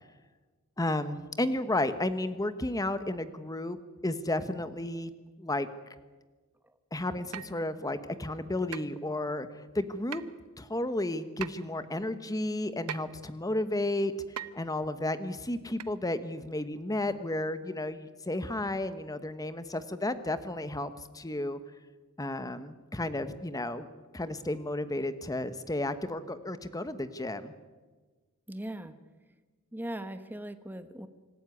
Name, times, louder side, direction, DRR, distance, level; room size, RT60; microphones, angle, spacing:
voice 1, 0.8-3.8 4.0-5.1 5.4-5.7 6.9-10.2 10.6-14.1 14.5-21.6 22.2-23.9 24.1-27.5, left 1 dB, 15° left, 12 dB, 1.1 m, -32 dB
sound 1, 7.3-7.6 8.7-8.9 10.1-10.4 11.4-11.5 12.9-13.1 14.4-14.6 15.8-15.9 16.5-16.6, right 8 dB, 85° right, 0.9 m, -39 dB
voice 2, 28.5-28.9 29.7-31.1, right 1 dB, 10° right, 10 dB, 1.1 m, -39 dB
26.0 x 14.5 x 9.8 m, 1.3 s
head